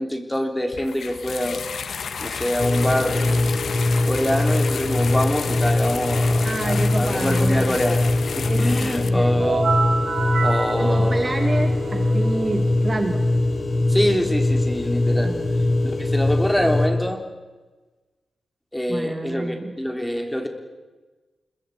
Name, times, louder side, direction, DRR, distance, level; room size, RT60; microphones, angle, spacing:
voice 1, 0.0-1.6 2.2-3.5 4.1-8.1 8.4-9.7 10.4-11.2 13.9-15.3 15.8-17.2 18.7-20.5, equal, 5° left, 4 dB, 3.6 m, -25 dB
sound 1, 0.7-9.1, left 6 dB, 65° left, 1.4 m, -32 dB
sound 2, 2.6-16.9, left 2 dB, 35° left, 3.6 m, -22 dB
voice 2, 6.4-7.8 8.5-9.4 10.8-13.3 15.2-15.5 18.9-19.7, right 2 dB, 25° right, 5 dB, 2.0 m, -28 dB
sound 3, 9.4-13.0, right 4 dB, 70° right, 6.1 m, -27 dB
26.0 x 22.5 x 8.6 m, 1.3 s
wide cardioid pair, 125°, 0 cm